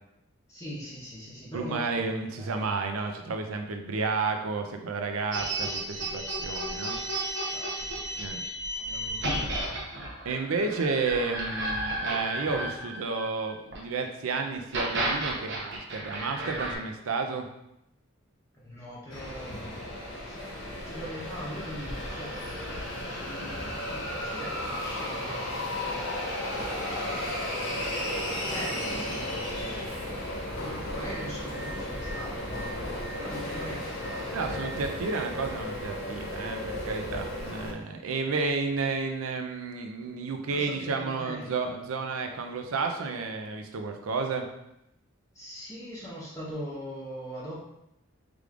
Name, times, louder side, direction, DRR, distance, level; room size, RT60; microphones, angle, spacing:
voice 1, 0.5-1.8 2.2-2.7 7.4-8.4 8.8-9.8 18.6-19.9 20.3-20.4 20.8-28.0 28.5-34.9 40.5-41.7 45.3-47.6, equal, 15° left, -7 dB, 0.9 m, -42 dB
voice 2, 1.5-7.0 8.2-8.4 10.2-17.5 34.3-44.5, right 4 dB, 85° right, 4 dB, 0.5 m, -31 dB
sound 1, 5.3-13.8 14.5-16.7, right 1 dB, 55° right, 0.8 m, -33 dB
sound 2, 19.1-37.7, left 1 dB, 65° left, 1.0 m, -34 dB
4.9 x 3.3 x 2.4 m, 0.85 s
head